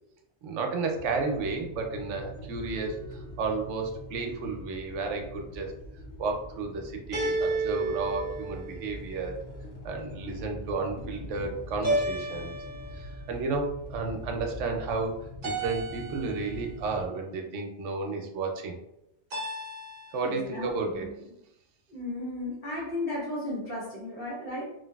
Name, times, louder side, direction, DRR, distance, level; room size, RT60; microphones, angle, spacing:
voice 1, 0.4-5.7 6.2-9.4 9.8-12.5 12.9-18.7 20.1-21.2, right 3 dB, 90° right, 2 dB, 0.9 m, -32 dB
sound 1, 0.9-17.1, equal, 75° left, 0.8 m, -43 dB
sound 2, 2.7-3.4 7.1-9.1 11.8-13.2 15.4-16.6 19.3-20.3, right 2 dB, 50° right, 0.8 m, -33 dB
voice 2, 20.2-21.1 21.9-24.6, left 2 dB, 55° left, -4 dB, 1.2 m, -35 dB
3.1 x 2.5 x 2.2 m, 0.82 s
omnidirectional pair, 1.2 m